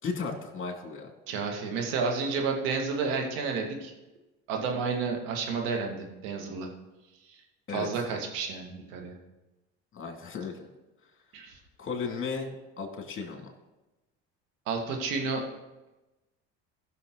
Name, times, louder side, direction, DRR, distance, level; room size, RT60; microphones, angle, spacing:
voice 1, 0.0-1.1 7.7-7.9 9.9-10.7 11.8-13.5, left 5 dB, 40° left, 3 dB, 2.6 m, -35 dB
voice 2, 1.3-3.9 4.5-6.7 7.3-7.4 7.7-9.1 11.3-11.6 14.7-15.4, right 4 dB, 80° right, 2 dB, 2.2 m, -31 dB
15.5 x 6.7 x 3.9 m, 1.1 s
supercardioid pair, 85°, 33 cm